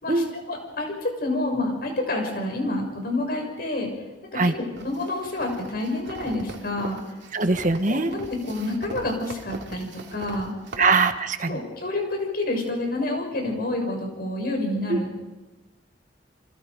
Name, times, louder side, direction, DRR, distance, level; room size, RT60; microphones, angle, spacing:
voice 1, 0.0-3.9 4.3-7.0 7.9-10.9 11.5-15.2, left 2 dB, 60° left, 2 dB, 6.5 m, -28 dB
sound 1, 4.8-10.9, right 2 dB, 75° right, 2.9 m, -40 dB
voice 2, 7.3-8.1 10.8-11.6 14.9-15.0, right 3 dB, 45° right, 8 dB, 1.3 m, -22 dB
30.0 x 24.5 x 5.2 m, 1.1 s
head